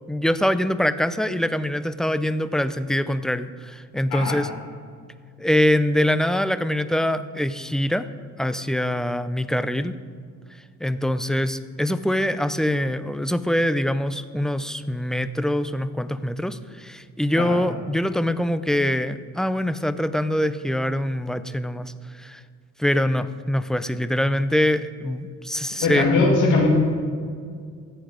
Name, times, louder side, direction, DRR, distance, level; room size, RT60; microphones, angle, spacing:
voice 1, 0.1-4.5 5.4-8.1 8.4-9.9 10.8-22.4 22.8-26.0, left 1 dB, ahead, 13 dB, 0.5 m, -24 dB
voice 2, 25.8-26.7, left 3 dB, 85° left, 0 dB, 2.2 m, -20 dB
14.0 x 8.1 x 5.0 m, 2.1 s
cardioid pair, 90°, 30 cm